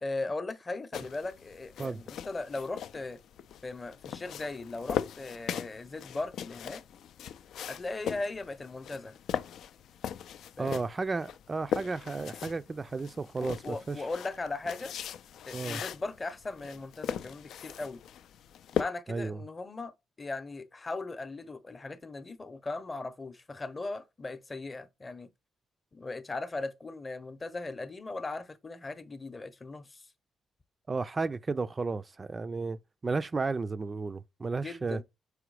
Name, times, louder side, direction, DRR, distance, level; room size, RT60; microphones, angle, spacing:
voice 1, 0.0-3.2 3.6-6.8 7.7-9.2 10.6-10.9 13.4-14.9 15.5-18.0 18.7-19.9 20.2-25.3 25.9-30.0 34.6-35.0, left 3 dB, 30° left, 0.7 m, -38 dB
sound 1, 0.9-18.8, left 9 dB, 75° left, 0.4 m, -39 dB
voice 2, 10.6-14.1 15.5-15.8 19.1-19.4 30.9-35.0, right 4 dB, 30° right, 0.4 m, -33 dB
4.9 x 4.9 x 4.7 m
cardioid pair, 90°, 0 cm